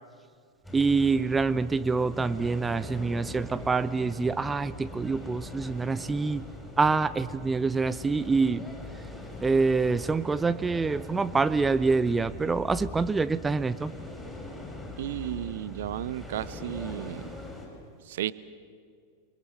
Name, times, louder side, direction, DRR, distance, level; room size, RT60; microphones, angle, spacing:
sound 1, 0.6-17.7, left 2 dB, 5° left, 6.5 m, -41 dB
voice 1, 0.7-6.5 6.8-8.6 9.4-13.9, right 4 dB, 15° right, 14 dB, 0.6 m, -26 dB
voice 2, 15.0-17.3 18.0-18.3, right 12 dB, 55° right, 17 dB, 0.8 m, -33 dB
29.0 x 22.5 x 7.9 m, 2.1 s
figure-of-eight pair, 90°, 0 cm